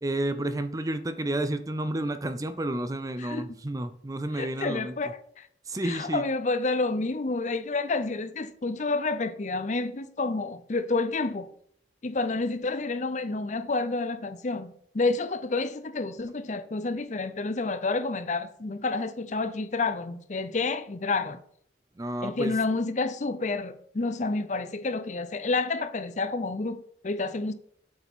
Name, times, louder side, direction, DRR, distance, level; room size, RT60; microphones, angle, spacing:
voice 1, 0.0-5.0 5.7-6.3 22.0-22.6, right 1 dB, 20° right, 0.5 m, -31 dB
voice 2, 4.3-5.1 5.4-5.5 5.8-11.5 12.0-21.4 22.2-27.5, left 3 dB, 40° left, 0.6 m, -29 dB
8.4 x 8.0 x 3.7 m
head